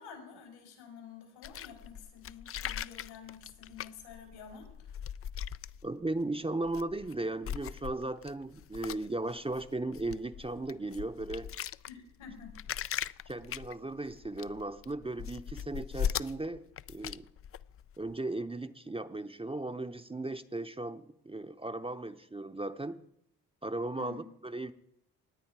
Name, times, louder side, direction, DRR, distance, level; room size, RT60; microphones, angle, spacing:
voice 1, 0.0-5.1 11.9-12.5 24.0-24.3, left 7 dB, 80° left, 3 dB, 5.0 m, -50 dB
sound 1, 1.4-6.2 6.6-7.1 7.4-18.2, left 9 dB, 30° left, 0.4 m, -40 dB
voice 2, 5.8-11.5 13.3-16.6 16.9-17.3 18.0-23.0 23.6-24.7, right 2 dB, 10° right, 9 dB, 0.8 m, -36 dB
18.0 x 9.7 x 4.7 m, 0.76 s
hypercardioid pair, 55°, 46 cm